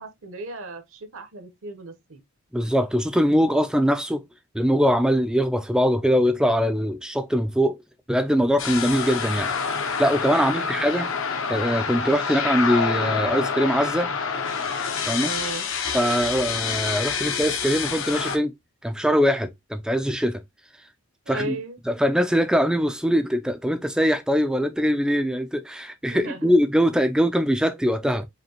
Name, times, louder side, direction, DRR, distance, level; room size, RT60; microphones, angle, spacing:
voice 1, 0.0-2.2 10.3-10.9 15.2-15.7 21.3-21.8 26.1-26.5, right 2 dB, 65° right, 0.9 m, -36 dB
voice 2, 2.5-4.2 4.5-7.8 8.1-9.5 10.0-11.1 11.5-14.1 15.1-15.3 15.9-18.5 18.8-20.4 21.3-21.6 21.9-28.3, equal, 5° right, 0.3 m, -22 dB
sound 1, 8.6-18.4, left 6 dB, 60° left, 0.7 m, -27 dB
5.0 x 2.7 x 2.9 m
head